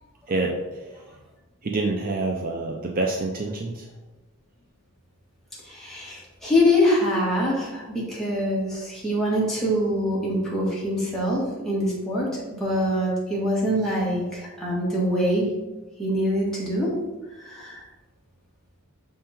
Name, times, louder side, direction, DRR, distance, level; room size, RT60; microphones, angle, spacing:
voice 1, 0.3-0.9 1.6-3.9, right 2 dB, 40° right, 1 dB, 0.5 m, -27 dB
voice 2, 5.6-15.5 16.0-16.9 17.3-17.8, equal, ahead, -7 dB, 1.7 m, -24 dB
6.4 x 3.7 x 4.3 m, 1.1 s
head